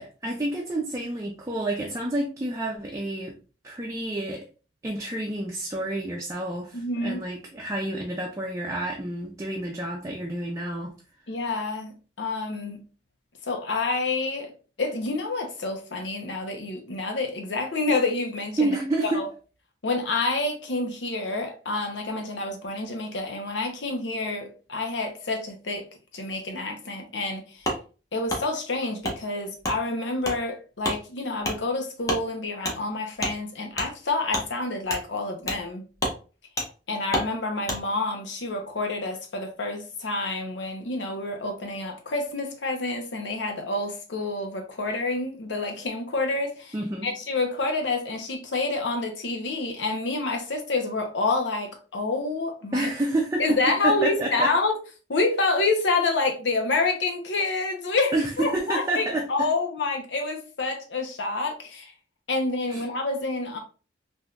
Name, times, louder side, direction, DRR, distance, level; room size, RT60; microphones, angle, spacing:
voice 1, 0.0-3.3 3.6-4.5 4.8-10.9 18.6-19.2 46.7-47.1 52.7-53.6 53.8-54.5 58.1-59.5 62.7-62.8, right 2 dB, 20° right, 0.4 m, -29 dB
voice 2, 6.7-7.2 11.3-12.8 13.4-14.5 14.8-18.8 19.0-19.3 19.8-25.9 26.1-27.7 28.1-35.9 36.9-46.7 47.0-52.9 53.4-54.7 55.1-61.9 62.3-63.6, left 3 dB, 85° left, 0.8 m, -28 dB
Wood, 27.6-27.8 28.3-28.4 29.0-29.2 29.6-29.8 30.2-30.4 30.8-31.0 31.4-31.6 32.0-32.2 32.6-32.8 33.2-33.3 33.7-33.9 34.3-34.4 34.9-35.0 35.5-35.6 36.0-36.2 36.6-36.7 37.1-37.3 37.6-37.8, equal, 20° left, 0.8 m, -28 dB
3.5 x 2.6 x 2.3 m
head